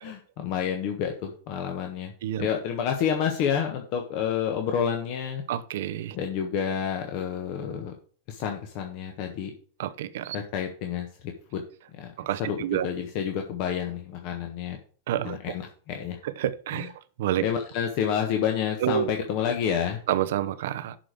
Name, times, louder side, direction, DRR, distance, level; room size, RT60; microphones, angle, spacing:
voice 1, 0.0-2.1 2.4-5.4 6.1-7.9 8.3-9.5 10.3-11.6 11.9-14.8 15.2-16.2 16.7-16.9 17.4-20.0, left 8 dB, 45° left, 1.4 m, -29 dB
voice 2, 5.5-6.2 9.8-10.4 12.2-12.9 15.1-15.4 16.4-16.9 17.2-17.4 18.8-19.1 20.1-21.0, right 12 dB, 55° right, 0.8 m, -28 dB
11.5 x 5.0 x 4.9 m
figure-of-eight pair, 90°, 0 cm